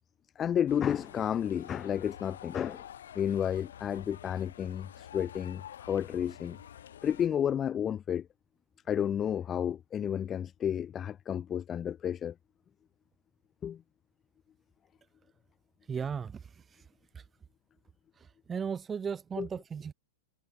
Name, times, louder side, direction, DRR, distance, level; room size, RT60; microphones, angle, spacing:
voice 1, 0.4-2.9 3.2-6.6 7.0-8.3 8.9-12.3 13.6-13.8 19.4-19.5, left 9 dB, 25° left, 0.3 m, -31 dB
sound 1, 0.7-7.3, left 10 dB, 75° left, 2.1 m, -49 dB
voice 2, 15.9-16.8 17.1-17.3 18.2-19.9, right 6 dB, 20° right, 1.1 m, -37 dB
hypercardioid pair, 115°, 0 cm